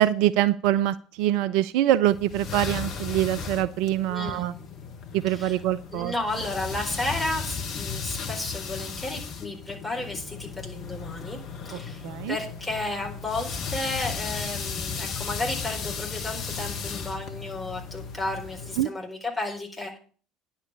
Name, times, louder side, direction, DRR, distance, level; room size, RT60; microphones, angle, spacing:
voice 1, 0.0-4.5 5.1-6.1 11.7-12.4 18.8-18.9, right 13 dB, 60° right, 15 dB, 0.4 m, -24 dB
sound 1, 2.1-18.8, left 5 dB, 45° left, 1.3 m, -35 dB
voice 2, 4.1-4.5 5.3-5.6 5.9-11.4 11.6-20.0, left 2 dB, 5° left, -1 dB, 4.4 m, -33 dB
10.0 x 5.6 x 8.3 m, 0.41 s
figure-of-eight pair, 65°, 0 cm